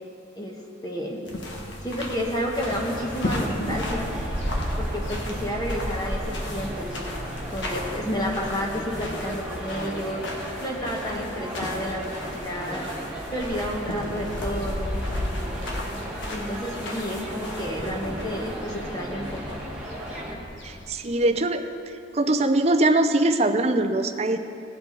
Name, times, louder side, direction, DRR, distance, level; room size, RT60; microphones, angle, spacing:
voice 1, 0.4-1.2 1.8-4.1 4.8-7.0 7.5-10.2 10.6-12.9 13.3-15.0 16.3-19.6, equal, 20° left, -1 dB, 1.1 m, -31 dB
sound 1, 1.3-20.9, left 1 dB, 70° left, 1.6 m, -33 dB
sound 2, 2.6-20.4, right 1 dB, 5° right, 1.4 m, -36 dB
voice 2, 20.6-24.4, right 2 dB, 30° right, 7 dB, 0.5 m, -22 dB
18.5 x 8.0 x 4.0 m, 2.6 s
head